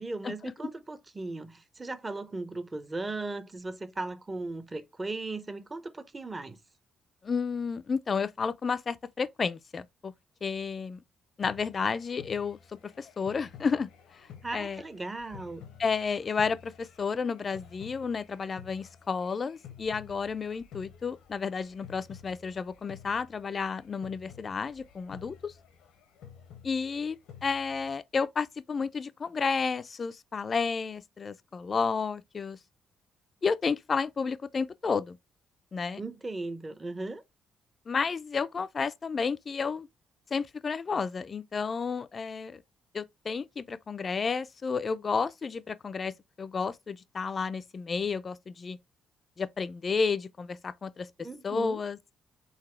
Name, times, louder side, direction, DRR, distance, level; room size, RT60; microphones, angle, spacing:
voice 1, 0.0-6.6 14.4-15.7 36.0-37.2 51.2-51.8, right 2 dB, 25° right, 0.7 m, -37 dB
voice 2, 7.2-10.1 10.4-11.0 11.4-12.6 13.0-13.9 14.5-14.8 15.8-25.5 26.6-32.6 33.4-35.2 35.7-36.0 37.9-39.9 40.3-42.6 42.9-48.8 49.4-51.1 51.4-52.0, left 5 dB, 40° left, 0.4 m, -31 dB
sound 1, 11.4-28.0, left 8 dB, 85° left, 0.8 m, -52 dB
4.0 x 2.7 x 4.3 m
cardioid pair, 90°, 0 cm